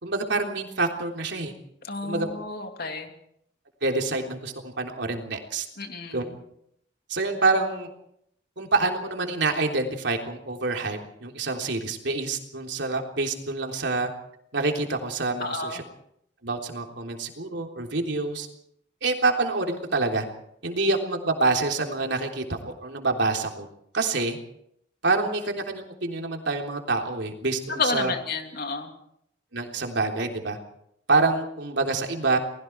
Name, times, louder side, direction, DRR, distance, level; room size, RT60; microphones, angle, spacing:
voice 1, 0.0-1.5 2.0-2.3 3.8-5.6 6.1-6.2 7.1-7.9 8.6-14.1 14.5-15.8 16.4-18.5 19.0-20.2 20.6-23.7 23.9-24.4 25.0-28.1 29.5-30.6 31.1-32.4, right 3 dB, 70° right, 2 dB, 3.5 m, -26 dB
voice 2, 1.9-3.1 5.8-6.3 15.4-15.8 27.8-28.9, left 3 dB, 55° left, 4 dB, 3.0 m, -30 dB
30.0 x 20.5 x 4.7 m, 0.72 s
head